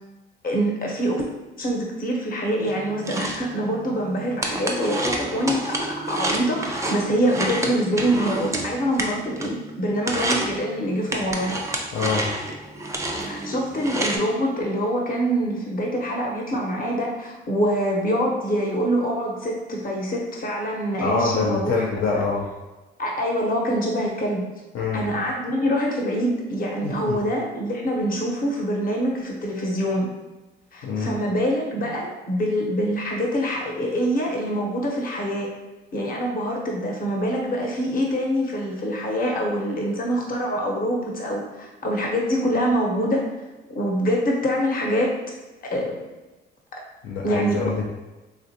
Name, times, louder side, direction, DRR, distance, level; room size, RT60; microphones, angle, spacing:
voice 1, 0.4-1.2 1.6-5.7 6.1-11.6 13.2-21.9 23.0-24.4 24.9-30.1 30.7-35.5 35.9-43.2 43.7-45.1 45.6-46.1 47.2-47.6, equal, 45° left, -1 dB, 0.9 m, -25 dB
sound 1, 2.7-9.7 10.0-10.5 11.1-14.2, right 1 dB, 15° right, 0.4 m, -29 dB
voice 2, 11.9-12.3 21.0-22.5 24.7-25.1 26.8-27.2 30.8-31.1 47.0-47.9, left 4 dB, 70° left, -2 dB, 0.5 m, -25 dB
3.3 x 2.4 x 2.7 m, 1.1 s
cardioid pair, 90°, 20 cm